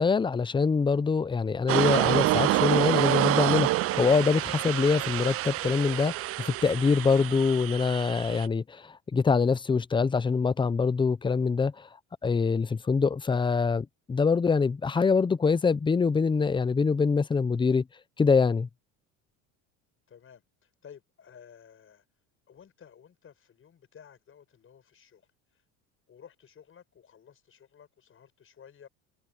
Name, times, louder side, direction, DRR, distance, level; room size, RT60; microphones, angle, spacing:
voice 1, 0.0-11.9 12.2-17.8 18.2-18.7, left 5 dB, 15° left, 0.6 m, -24 dB
sound 1, 1.7-8.5, right 16 dB, 40° right, 0.5 m, -27 dB
voice 2, 20.1-22.0 22.5-25.3 25.5-25.6 26.1-28.9, left 8 dB, 35° left, 7.1 m, -54 dB
supercardioid pair, 115°, 37 cm